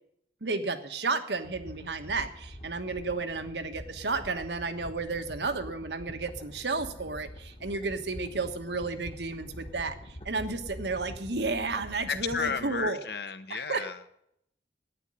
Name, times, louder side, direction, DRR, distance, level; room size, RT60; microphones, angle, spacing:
voice 1, 0.4-13.0 13.5-13.9, right 3 dB, 80° right, 8 dB, 1.4 m, -32 dB
sound 1, 1.3-12.9, equal, 30° left, 1.2 m, -45 dB
voice 2, 12.1-14.1, left 6 dB, 70° left, 11 dB, 1.1 m, -33 dB
11.5 x 9.7 x 7.6 m, 0.72 s
head